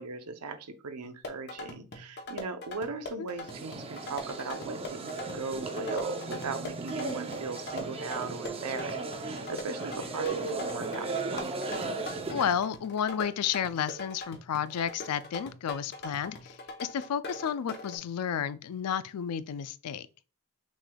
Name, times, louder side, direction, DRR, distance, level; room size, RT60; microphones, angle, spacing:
voice 1, 0.0-11.6, right 4 dB, 90° right, 0.7 m, -39 dB
sound 1, 1.0-18.0, left 2 dB, 50° left, 0.8 m, -43 dB
sound 2, 3.4-12.6, right 3 dB, 25° right, 0.5 m, -36 dB
voice 2, 12.3-20.1, left 8 dB, 85° left, 0.4 m, -32 dB
6.2 x 3.4 x 2.3 m
head